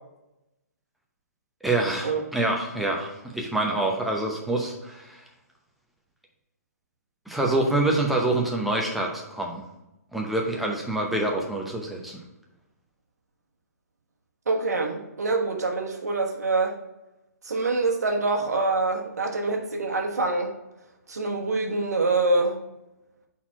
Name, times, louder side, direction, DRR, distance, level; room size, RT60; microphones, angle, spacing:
voice 1, 1.6-5.2 7.3-9.6 10.1-12.2, right 2 dB, ahead, -1 dB, 0.8 m, -26 dB
voice 2, 14.5-16.7 17.5-20.5 21.1-22.6, right 3 dB, 70° right, 2 dB, 1.2 m, -25 dB
4.2 x 4.2 x 5.5 m, 0.93 s
figure-of-eight pair, 130°, 9 cm